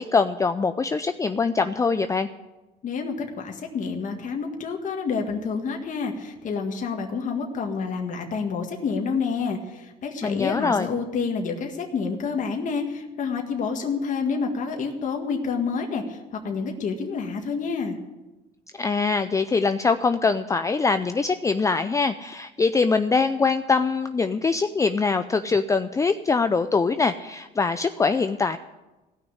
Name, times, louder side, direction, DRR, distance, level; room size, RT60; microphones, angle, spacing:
voice 1, 0.0-2.3 10.2-10.9 18.8-28.6, left 4 dB, 20° left, 10 dB, 0.5 m, -23 dB
voice 2, 2.8-16.2 16.4-18.0, left 5 dB, 50° left, 2 dB, 1.8 m, -28 dB
16.5 x 6.3 x 9.9 m, 1.1 s
cardioid pair, 110°, 17 cm